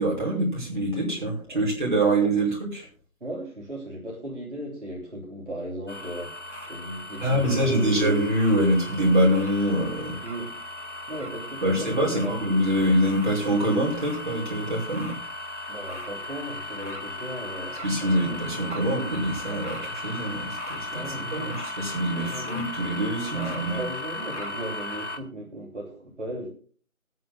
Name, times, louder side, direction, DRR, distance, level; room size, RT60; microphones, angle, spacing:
voice 1, 0.0-2.9 7.2-10.2 11.6-15.2 17.8-23.8, right 1 dB, 35° right, -4 dB, 5.5 m, -25 dB
voice 2, 3.2-6.4 6.7-8.1 10.2-10.6 10.8-12.4 15.7-18.4 20.9-21.5 22.1-22.5 23.3-26.5, right 1 dB, 55° right, -2 dB, 3.2 m, -36 dB
sound 1, 5.9-25.2, left 1 dB, 55° left, 1.8 m, -36 dB
25.0 x 9.5 x 2.3 m, 0.41 s
figure-of-eight pair, 175°, 42 cm